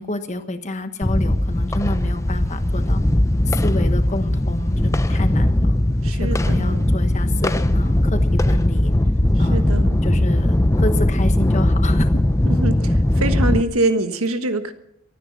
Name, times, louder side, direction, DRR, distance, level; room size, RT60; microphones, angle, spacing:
voice 1, 0.0-3.0 3.5-8.9 9.4-12.1, left 2 dB, 35° left, 8 dB, 1.3 m, -29 dB
sound 1, 1.0-13.6, left 1 dB, 15° left, 0.6 m, -19 dB
voice 2, 6.0-6.9 9.5-10.1 12.4-14.7, right 2 dB, 85° right, 8 dB, 1.5 m, -24 dB
24.0 x 10.0 x 6.0 m, 0.75 s
head